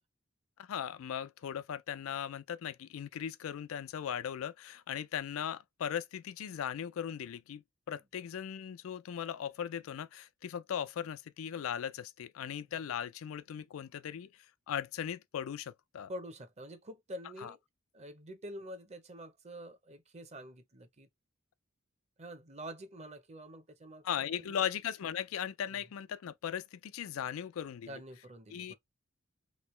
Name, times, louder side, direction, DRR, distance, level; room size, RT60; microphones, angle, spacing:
voice 1, 0.6-7.6 7.9-16.1 17.4-17.5 24.0-28.0 28.5-28.7, left 9 dB, 90° left, 0.4 m, -38 dB
voice 2, 16.1-17.6 17.9-21.1 22.2-24.0 24.4-24.6 25.7-25.8 27.9-28.7, equal, 35° right, 0.7 m, -47 dB
3.1 x 3.0 x 3.1 m
head